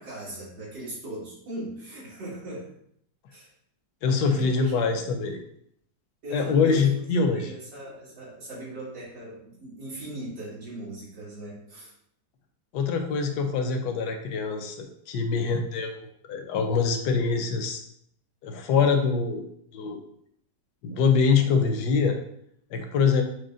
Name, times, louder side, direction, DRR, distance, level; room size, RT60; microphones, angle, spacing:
voice 1, 0.0-2.7 3.3-3.5 4.3-4.8 6.2-7.0 7.3-11.9, right 1 dB, 70° right, -7 dB, 2.6 m, -39 dB
voice 2, 4.0-5.4 6.3-7.5 12.7-17.8 18.4-19.4 19.7-20.0 20.8-22.2 22.7-23.2, left 5 dB, 70° left, 5 dB, 1.2 m, -24 dB
6.3 x 2.2 x 3.7 m, 0.70 s
omnidirectional pair, 1.9 m